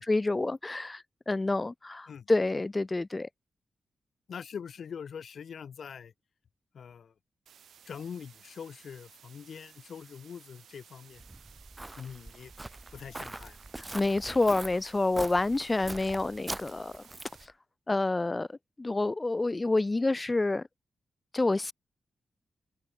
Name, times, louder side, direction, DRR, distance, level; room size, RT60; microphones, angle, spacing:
voice 1, 0.0-3.3 13.8-17.0 17.9-18.5 18.8-20.6 21.3-21.7, left 2 dB, 25° left, 1.8 m, -28 dB
voice 2, 4.3-6.1 6.7-7.1 7.8-11.2 12.0-12.5 12.9-13.6, left 7 dB, 70° left, 4.6 m, -43 dB
sound 1, 7.5-17.5, right 8 dB, 85° right, 6.2 m, -57 dB
Walk footsteps, 11.2-17.5, right 2 dB, 20° right, 1.1 m, -43 dB
cardioid pair, 70°, 0 cm